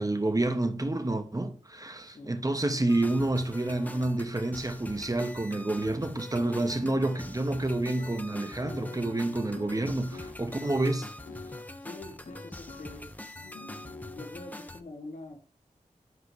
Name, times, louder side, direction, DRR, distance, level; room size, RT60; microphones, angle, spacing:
voice 1, 0.0-11.1, right 2 dB, 25° right, 1.0 m, -29 dB
voice 2, 2.1-2.4 11.8-13.1 13.5-13.8 14.1-15.4, left 2 dB, 65° left, 1.3 m, -45 dB
sound 1, 2.9-14.8, left 1 dB, 10° left, 0.8 m, -44 dB
sound 2, 6.3-11.7 12.3-13.0 13.4-14.3, left 3 dB, 85° left, 0.8 m, -47 dB
9.6 x 4.9 x 3.2 m
cardioid pair, 40°, 14 cm